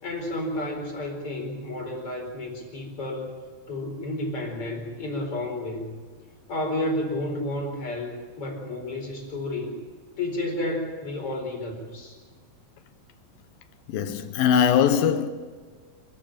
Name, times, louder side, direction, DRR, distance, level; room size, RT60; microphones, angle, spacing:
voice 1, 0.0-3.4 3.7-5.9 6.5-9.7 10.2-12.2, left 1 dB, 40° left, 5.5 m, -31 dB
voice 2, 13.9-15.3, left 8 dB, 75° left, 2.8 m, -21 dB
27.5 x 14.0 x 9.0 m
omnidirectional pair, 4.2 m